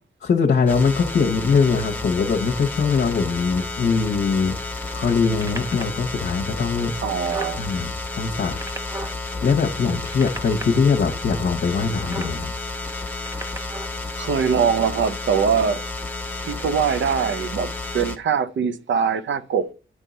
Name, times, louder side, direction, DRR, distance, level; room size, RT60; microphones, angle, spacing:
voice 1, 0.2-6.9 7.6-8.6 9.4-12.5, left 5 dB, 60° left, 0.9 m, -22 dB
sound 1, 0.7-18.2, left 2 dB, 10° left, 1.3 m, -31 dB
sound 2, 5.2-6.0 6.7-6.8 7.0-7.6 8.3-9.2 9.9-10.6 11.9-12.3 13.1-13.9 14.7-14.8, right 1 dB, 15° right, 0.9 m, -35 dB
voice 2, 7.0-7.6 14.2-15.8 16.5-19.7, right 6 dB, 75° right, 0.6 m, -22 dB
9.7 x 3.7 x 4.0 m
cardioid pair, 80°, 19 cm